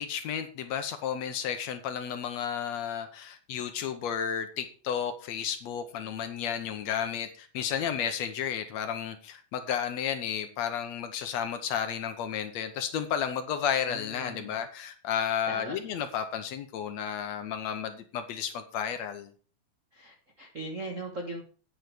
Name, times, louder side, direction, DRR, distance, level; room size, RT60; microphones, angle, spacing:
voice 1, 0.0-19.3, left 8 dB, 70° left, 8 dB, 2.0 m, -32 dB
voice 2, 13.9-14.5 15.5-15.8 19.9-21.4, right 2 dB, 50° right, 2 dB, 0.9 m, -39 dB
9.3 x 7.9 x 5.0 m, 0.41 s
omnidirectional pair, 3.5 m